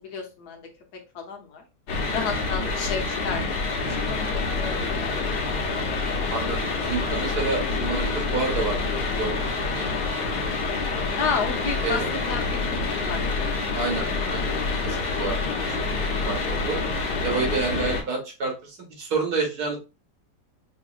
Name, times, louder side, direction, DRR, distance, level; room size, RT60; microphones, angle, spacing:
voice 1, 0.0-0.6 1.1-1.6 2.1-3.4 4.0-5.5 11.2-12.6 13.1-13.2, left 5 dB, 70° left, 3 dB, 1.4 m, -31 dB
sound 1, 1.9-18.0, left 3 dB, 90° left, 1.6 m, -27 dB
voice 2, 6.3-9.9 11.8-12.1 13.7-14.5 14.8-15.3 15.8-15.9 16.3-16.8 17.2-19.8, right 4 dB, 70° right, 1 dB, 1.7 m, -29 dB
5.0 x 2.8 x 2.4 m, 0.28 s
omnidirectional pair, 1.8 m